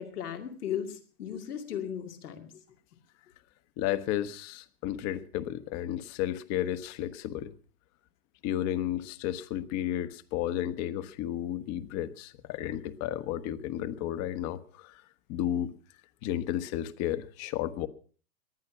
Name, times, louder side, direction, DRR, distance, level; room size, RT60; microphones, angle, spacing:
voice 1, 0.0-2.5, left 9 dB, 85° left, 5 dB, 2.5 m, -36 dB
voice 2, 3.8-7.5 8.4-15.0 15.3-15.7 16.2-17.9, left 12 dB, 35° left, 13 dB, 1.3 m, -33 dB
19.5 x 11.5 x 6.1 m, 0.42 s
hypercardioid pair, 130°, 44 cm